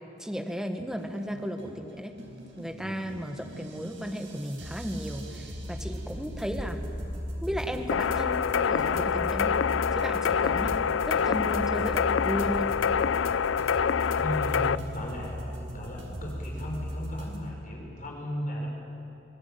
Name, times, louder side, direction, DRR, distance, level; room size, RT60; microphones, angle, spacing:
voice 1, 0.2-2.1 2.6-6.8 7.4-9.6 9.9-10.8 11.0-12.7, equal, 5° right, 4 dB, 1.4 m, -34 dB
sound 1, 0.8-17.4, equal, 80° right, 4.6 m, -39 dB
Thunderstorm, 5.4-17.0, equal, 40° right, 4.5 m, -44 dB
sound 2, 7.9-14.8, left 7 dB, 90° left, 0.5 m, -26 dB
voice 2, 14.2-15.4 15.7-18.7, equal, 40° left, -2 dB, 6.4 m, -35 dB
25.5 x 19.0 x 9.2 m, 2.8 s
head